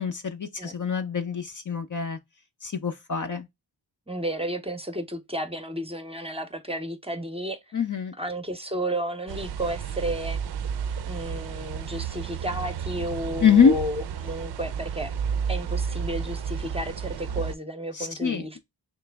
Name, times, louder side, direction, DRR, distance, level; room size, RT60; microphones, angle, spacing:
voice 1, 0.0-2.2 2.6-3.5 7.7-8.1 13.4-13.7 17.9-18.6, left 6 dB, 45° left, 0.6 m, -24 dB
voice 2, 4.1-7.6 8.2-10.4 11.0-15.2 15.5-18.6, right 1 dB, 15° right, 0.7 m, -32 dB
sound 1, 9.3-17.6, right 7 dB, 60° right, 0.5 m, -32 dB
3.2 x 3.1 x 3.3 m
wide cardioid pair, 75°, 44 cm